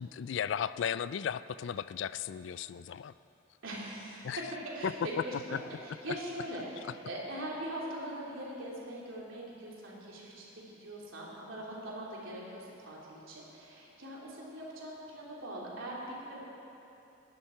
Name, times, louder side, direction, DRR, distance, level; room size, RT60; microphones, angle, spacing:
voice 1, 0.0-3.1 4.2-4.4 4.8-5.1 5.5-5.6, left 8 dB, 60° left, 15 dB, 0.3 m, -35 dB
voice 2, 3.6-4.4 4.7-5.6 5.8-16.4, right 1 dB, 75° right, -5 dB, 3.2 m, -42 dB
19.0 x 10.5 x 4.5 m, 2.9 s
head